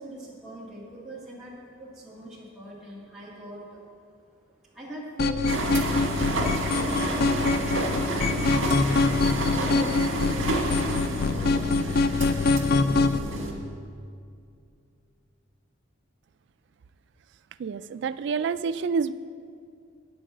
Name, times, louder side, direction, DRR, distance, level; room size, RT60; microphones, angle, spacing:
voice 1, 0.0-3.9 4.1-12.3, right 1 dB, 5° right, -8 dB, 1.8 m, -40 dB
sound 1, 5.2-13.2, left 3 dB, 50° left, 0.4 m, -24 dB
sound 2, 5.5-13.5, right 2 dB, 80° right, 1.6 m, -30 dB
voice 2, 17.6-19.1, right 5 dB, 60° right, 14 dB, 0.3 m, -28 dB
9.2 x 6.2 x 7.5 m, 2.3 s
head